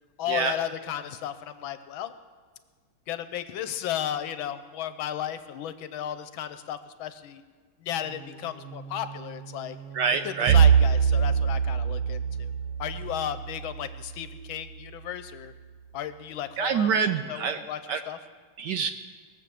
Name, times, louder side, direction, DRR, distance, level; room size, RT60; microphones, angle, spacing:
voice 1, 0.2-2.1 3.1-7.4 7.8-9.8 10.2-12.5 12.8-15.5 15.9-18.2, left 10 dB, 75° left, 12 dB, 1.4 m, -34 dB
sound 1, 7.9-13.8, right 6 dB, 50° right, 6.0 m, -47 dB
voice 2, 9.9-10.6 16.6-17.6 17.9-18.0 18.6-18.9, right 6 dB, 70° right, 8 dB, 1.1 m, -26 dB
Bowed string instrument, 10.5-14.7, right 7 dB, 90° right, 1.5 m, -23 dB
20.5 x 7.5 x 6.9 m, 1.5 s
omnidirectional pair, 2.3 m